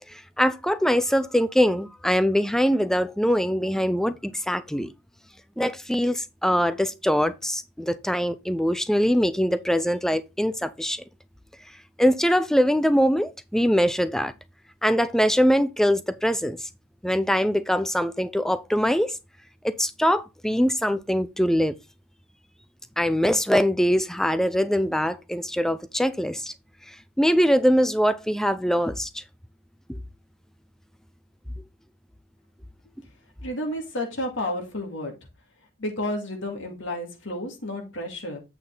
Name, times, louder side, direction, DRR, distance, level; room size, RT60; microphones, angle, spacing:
voice 1, 0.1-4.9 5.6-11.0 12.0-14.3 14.8-16.7 17.0-19.2 19.6-21.7 23.0-26.5 26.9-29.2 29.9-30.0, equal, ahead, 0.5 m, -23 dB
voice 2, 33.4-35.1 35.8-38.4, left 1 dB, 65° left, 2.4 m, -31 dB
8.4 x 5.6 x 3.9 m
head